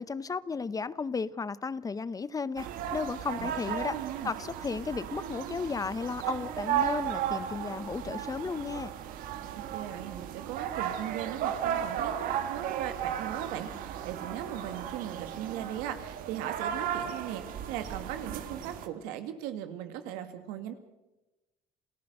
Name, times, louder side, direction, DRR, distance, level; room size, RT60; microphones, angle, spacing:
voice 1, 0.0-8.9, left 4 dB, 25° left, 0.7 m, -34 dB
sound 1, 2.6-18.9, right 9 dB, 75° right, 1.8 m, -35 dB
voice 2, 3.8-4.3 9.6-20.7, right 10 dB, 90° right, 2.1 m, -39 dB
28.0 x 14.5 x 6.7 m
supercardioid pair, 95°, 15 cm